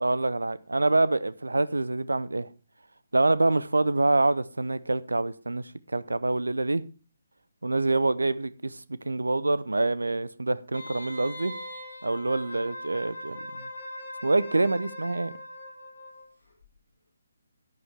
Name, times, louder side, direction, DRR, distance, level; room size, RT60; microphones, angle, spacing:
voice 1, 0.0-2.5 3.1-6.8 7.6-11.6 12.0-13.6 14.2-15.3, right 2 dB, 70° right, 17 dB, 0.7 m, -26 dB
Wind instrument woodwind instrument, 10.7-16.3 16.6-16.7, left 1 dB, 75° left, 4.5 m, -41 dB
11.0 x 10.0 x 3.5 m, 0.35 s
figure-of-eight pair, 140°, 0 cm